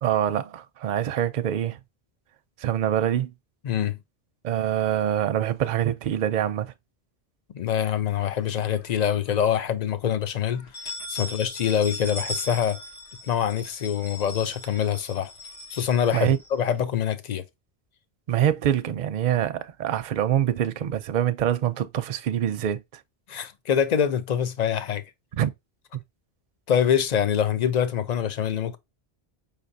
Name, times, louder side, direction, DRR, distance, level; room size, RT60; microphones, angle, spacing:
voice 1, 0.0-1.8 2.6-3.3 4.4-6.7 16.1-16.4 18.3-22.8 25.3-25.5 25.9-26.0, right 10 dB, 55° right, 0.6 m, -25 dB
voice 2, 3.6-4.0 7.5-10.7 11.1-12.8 13.3-15.3 15.7-17.4 23.3-25.0 26.7-28.8, left 9 dB, 50° left, 0.6 m, -25 dB
sound 1, 8.1-9.0 9.4-9.5 9.9-10.0 10.5-16.8, left 1 dB, 85° left, 1.5 m, -39 dB
5.4 x 3.2 x 2.6 m
omnidirectional pair, 1.1 m